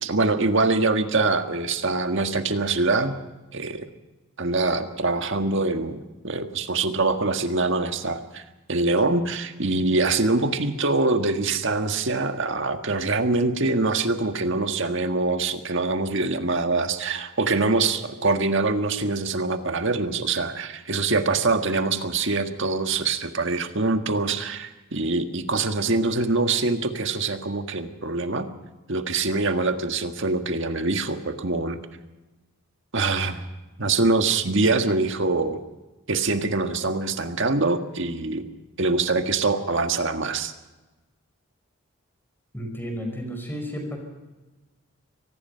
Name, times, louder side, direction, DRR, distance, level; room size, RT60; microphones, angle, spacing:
voice 1, 0.0-3.2 3.5-3.9 4.4-8.4 8.7-28.5 28.9-31.8 32.9-33.4 33.8-35.6 36.1-38.4 38.8-40.5, right 3 dB, 60° right, 7 dB, 1.7 m, -24 dB
voice 2, 42.5-44.0, equal, 10° left, 3 dB, 5.5 m, -32 dB
24.5 x 18.5 x 5.7 m, 1.1 s
head